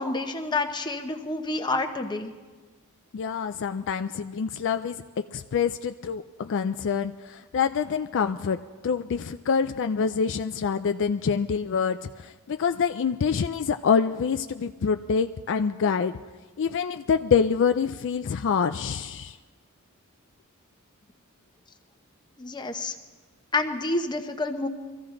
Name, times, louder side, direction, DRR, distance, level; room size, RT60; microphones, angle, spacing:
voice 1, 0.0-2.3 22.4-23.0 23.5-24.7, left 2 dB, 20° left, 5 dB, 0.9 m, -28 dB
voice 2, 3.1-16.2 16.6-19.4, left 6 dB, 55° left, 9 dB, 0.4 m, -26 dB
23.5 x 14.5 x 3.8 m, 1.4 s
head